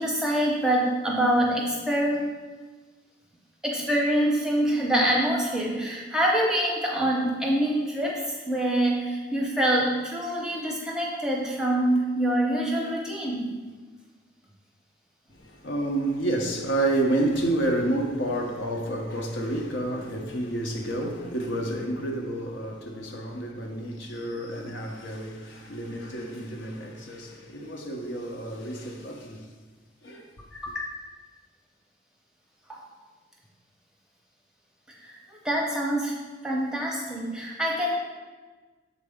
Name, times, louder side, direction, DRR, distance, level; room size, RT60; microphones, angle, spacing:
voice 1, 0.0-2.3 3.6-13.5 30.5-30.9 32.7-32.8 34.9-36.1 36.4-38.0, right 1 dB, 5° right, 0.7 m, -25 dB
voice 2, 15.4-29.4 30.0-30.2, right 1 dB, 65° left, 0.7 m, -29 dB
6.9 x 4.1 x 3.5 m
head